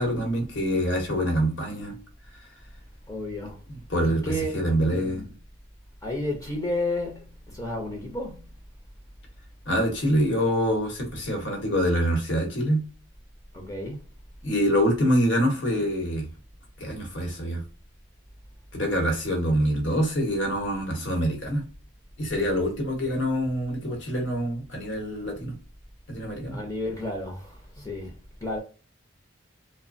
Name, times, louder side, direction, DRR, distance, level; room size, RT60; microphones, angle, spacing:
voice 1, 0.0-1.9 3.7-5.2 9.7-12.8 14.4-16.3 16.8-17.6 18.7-21.6 22.2-25.5 26.1-26.6, equal, 65° left, 1.0 m, -25 dB
voice 2, 3.1-3.6 4.0-5.3 6.0-7.2 7.5-8.4 13.5-14.0 26.5-28.1 28.4-28.6, left 1 dB, 15° left, 0.5 m, -32 dB
3.0 x 2.1 x 2.5 m
head